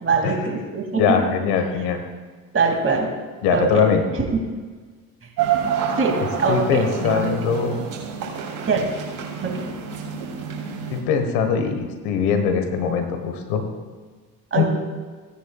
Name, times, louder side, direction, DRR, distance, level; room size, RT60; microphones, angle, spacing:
voice 1, 0.0-1.2 2.5-3.1 3.5-3.8 4.3-4.6 6.0-7.6 8.7-8.9 9.4-9.7 14.5-14.6, right 4 dB, 30° right, 1 dB, 2.6 m, -23 dB
voice 2, 1.0-2.0 3.4-4.0 6.5-7.9 10.9-13.6 14.5-14.6, left 6 dB, 70° left, 7 dB, 1.4 m, -21 dB
sound 1, 5.4-11.0, right 8 dB, 55° right, 3.0 m, -28 dB
17.0 x 10.0 x 2.4 m, 1.5 s
hypercardioid pair, 60°, 42 cm